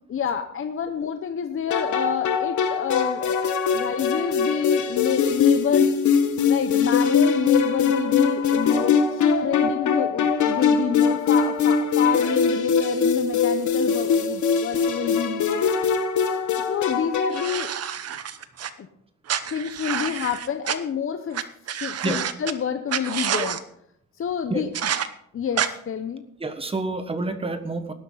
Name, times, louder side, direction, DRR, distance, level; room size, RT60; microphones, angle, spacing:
voice 1, 0.1-5.9 6.5-15.6 16.7-17.7 18.8-18.9 19.5-21.4 21.8-23.6 24.2-24.7 25.3-26.2, left 7 dB, 40° left, 7 dB, 0.8 m, -28 dB
sound 1, 1.7-17.6, left 6 dB, 70° left, 1.6 m, -22 dB
sound 2, 17.3-18.7 19.3-20.8 21.3-21.4 21.7-22.5 22.9-23.6 24.7-25.1 25.6-25.7, right 9 dB, 50° right, 1.0 m, -28 dB
voice 2, 26.4-27.9, right 2 dB, 20° right, 8 dB, 1.4 m, -28 dB
18.0 x 11.5 x 4.0 m, 0.72 s
cardioid pair, 160°, 31 cm